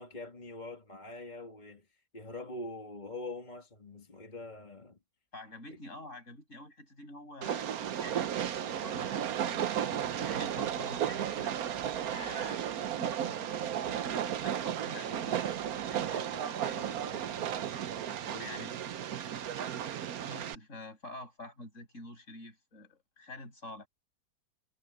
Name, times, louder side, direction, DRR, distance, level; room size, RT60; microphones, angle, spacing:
voice 1, 0.0-1.9 2.1-5.0 16.3-16.4 16.8-18.7, left 2 dB, 30° left, 2.3 m, -45 dB
voice 2, 5.3-7.7 8.0-8.3 8.6-11.6 12.1-16.8 18.3-18.7 20.3-23.9, left 1 dB, 50° left, 8.1 m, -48 dB
Train, 7.4-20.5, right 9 dB, 70° right, 1.3 m, -34 dB
omnidirectional pair, 1.7 m